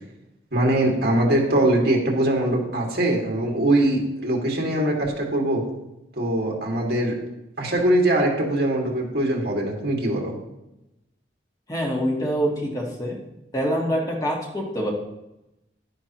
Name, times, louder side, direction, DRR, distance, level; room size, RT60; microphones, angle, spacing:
voice 1, 0.5-5.6 6.2-7.2 7.6-10.3, right 1 dB, 60° right, -1 dB, 2.3 m, -22 dB
voice 2, 11.7-13.2 13.5-14.9, equal, 20° left, -2 dB, 1.6 m, -25 dB
11.0 x 10.0 x 3.1 m, 0.93 s
head